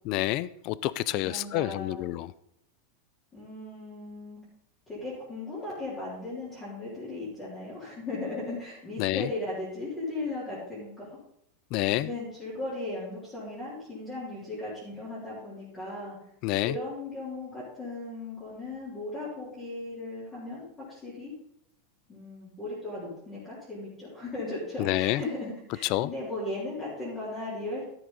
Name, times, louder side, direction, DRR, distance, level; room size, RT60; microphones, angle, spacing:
voice 1, 0.1-2.3 9.0-9.3 11.7-12.1 16.4-16.8 24.8-25.2 25.9-26.1, left 15 dB, 35° left, 18 dB, 0.4 m, -28 dB
voice 2, 1.2-2.0 3.3-4.4 4.9-10.9 11.9-16.2 16.6-21.3 22.1-27.8, left 2 dB, 15° left, -10 dB, 3.8 m, -37 dB
13.0 x 7.8 x 4.1 m, 0.75 s
supercardioid pair, 175°, 0 cm